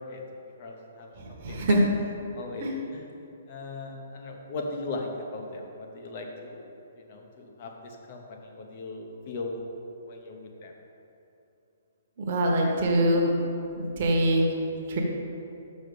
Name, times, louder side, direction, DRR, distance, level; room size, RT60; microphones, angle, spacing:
voice 1, 0.6-1.8 2.3-2.6 2.9-3.1 3.5-9.6 10.0-10.7, left 2 dB, 30° left, 2 dB, 0.9 m, -38 dB
voice 2, 1.2-1.8 2.6-2.7 12.2-13.3 13.8-15.0, right 1 dB, 30° right, -1 dB, 1.2 m, -24 dB
6.4 x 6.3 x 6.9 m, 2.9 s
hypercardioid pair, 180°, 0 cm